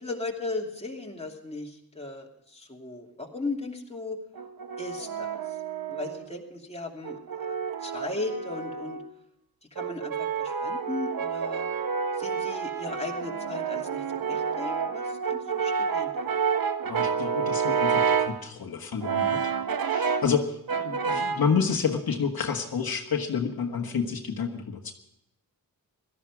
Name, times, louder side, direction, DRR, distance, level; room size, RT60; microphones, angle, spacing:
voice 1, 0.0-4.2 4.8-5.3 5.9-7.5 7.8-9.0 9.7-11.6 12.2-16.1 20.9-21.0, left 2 dB, 15° left, 0 dB, 2.6 m, -37 dB
Brass instrument, 4.3-6.3 7.0-9.1 9.8-18.4 19.0-20.4 20.7-21.5, right 6 dB, 65° right, 1.0 m, -29 dB
voice 2, 16.9-19.5 19.8-20.6 20.8-24.9, left 6 dB, 70° left, 3 dB, 1.6 m, -29 dB
17.5 x 13.0 x 4.8 m, 0.81 s
wide cardioid pair, 100°, 38 cm